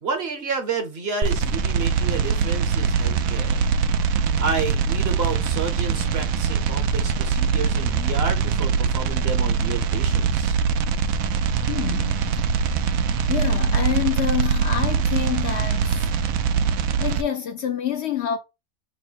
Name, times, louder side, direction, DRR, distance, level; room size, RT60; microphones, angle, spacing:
voice 1, 0.0-3.7 4.4-10.6, right 5 dB, 50° right, 1.0 m, -30 dB
sound 1, 1.2-17.2, right 6 dB, 85° right, 1.1 m, -22 dB
voice 2, 11.7-12.5 13.3-16.3 17.0-18.4, left 9 dB, 60° left, 0.8 m, -27 dB
5.7 x 2.1 x 4.4 m
omnidirectional pair, 1.4 m